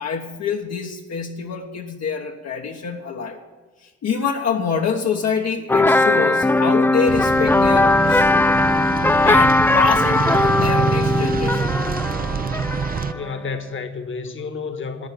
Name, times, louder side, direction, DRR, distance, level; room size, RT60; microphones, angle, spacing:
voice 1, 0.0-3.4 3.8-8.5 9.2-11.7, left 6 dB, 60° left, 1.3 m, -26 dB
sound 1, 5.7-13.4, left 2 dB, 10° left, 0.3 m, -18 dB
sound 2, 7.1-13.1, right 6 dB, 30° right, 0.6 m, -25 dB
voice 2, 13.1-15.1, left 4 dB, 40° left, 1.5 m, -30 dB
12.0 x 8.7 x 8.6 m
cardioid pair, 90°, 30 cm